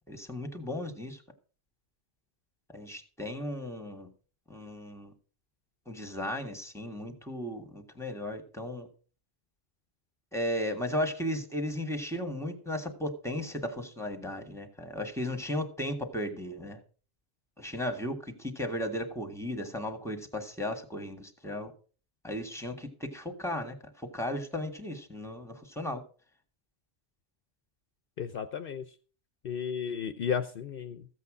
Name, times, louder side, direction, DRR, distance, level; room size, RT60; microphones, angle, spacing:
voice 1, 0.1-1.2 2.7-4.1 4.5-5.1 5.8-8.9 10.3-16.8 17.6-21.7 22.2-26.0, left 1 dB, 5° left, 6 dB, 1.7 m, -35 dB
voice 2, 28.2-28.9 29.4-31.1, left 7 dB, 60° left, 10 dB, 0.8 m, -33 dB
14.5 x 8.2 x 4.9 m, 0.40 s
omnidirectional pair, 1.1 m